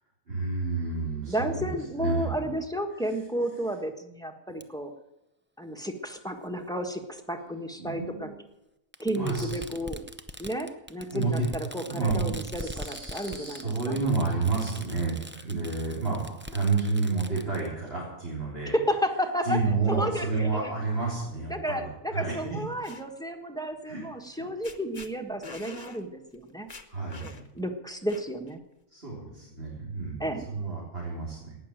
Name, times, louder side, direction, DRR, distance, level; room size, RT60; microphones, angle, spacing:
voice 1, 0.3-2.5 7.4-8.3 9.1-9.6 11.1-11.5 11.9-18.8 19.4-22.6 23.8-24.0 26.9-27.6 28.9-31.6, right 3 dB, 45° right, -5 dB, 4.2 m, -30 dB
voice 2, 1.3-4.9 5.6-8.3 9.0-10.1 10.4-14.0 18.6-19.6 19.9-20.7 21.5-26.7 27.5-28.6 30.2-30.5, equal, 5° left, 5 dB, 1.3 m, -32 dB
Fireworks, 4.6-4.7 5.8-5.9 7.2-7.3 8.9-17.7, right 1 dB, 15° right, 0.4 m, -42 dB
sound 1, 22.5-23.0 24.3-24.4 24.6-25.1 25.4-26.0 26.3-26.4 26.7-27.6 28.1-28.5, left 3 dB, 30° left, 1.1 m, -45 dB
18.0 x 6.9 x 9.1 m, 0.90 s
omnidirectional pair, 1.4 m